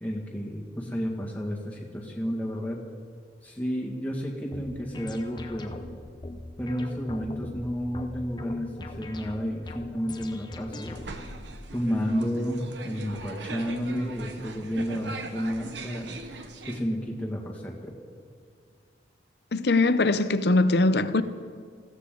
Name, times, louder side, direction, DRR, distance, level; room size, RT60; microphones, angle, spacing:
voice 1, 0.0-2.8 3.4-5.8 6.6-11.0 11.7-16.1 16.7-17.9, equal, 10° left, 1.9 m, -31 dB
sound 1, 4.5-11.4, left 2 dB, 25° left, 0.8 m, -42 dB
sound 2, 10.7-16.8, right 3 dB, 75° right, 1.1 m, -41 dB
voice 2, 19.5-21.2, left 2 dB, 60° left, 0.7 m, -21 dB
20.5 x 15.5 x 3.9 m
head